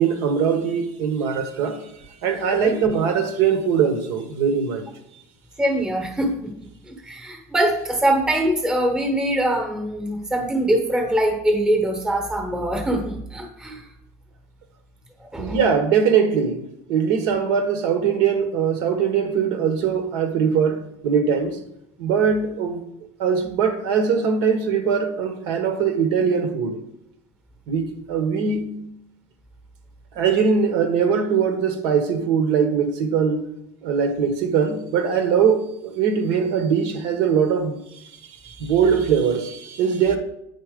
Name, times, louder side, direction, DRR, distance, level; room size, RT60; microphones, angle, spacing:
voice 1, 0.0-1.8 2.2-4.9 15.4-16.6 16.9-21.6 22.0-22.8 23.2-26.8 27.7-28.8 30.1-33.4 33.8-38.0 38.4-40.2, right 6 dB, 60° right, 1.1 m, -21 dB
voice 2, 5.6-6.5 6.8-13.9 15.2-15.6, right 1 dB, 10° right, 1.1 m, -23 dB
9.6 x 4.2 x 5.1 m
cardioid pair, 175°, 8 cm